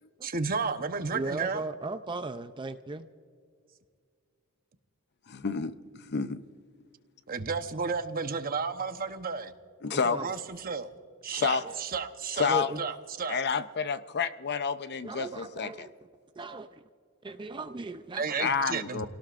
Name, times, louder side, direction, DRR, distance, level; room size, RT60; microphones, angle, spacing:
voice 1, 0.2-1.6 7.3-9.5 10.2-10.9 11.2-12.5 12.8-13.4 18.1-19.1, right 5 dB, 45° right, 8 dB, 0.9 m, -32 dB
voice 2, 1.1-3.1 10.1-10.3 12.5-12.8 15.0-15.9 16.4-16.7 17.2-18.5, right 2 dB, 20° right, 9 dB, 0.5 m, -36 dB
voice 3, 5.3-6.4 9.8-10.2 11.3-11.6 12.3-12.7 13.3-15.9 18.4-19.1, left 6 dB, 50° left, 12 dB, 0.7 m, -29 dB
30.0 x 18.0 x 2.5 m, 2.2 s
head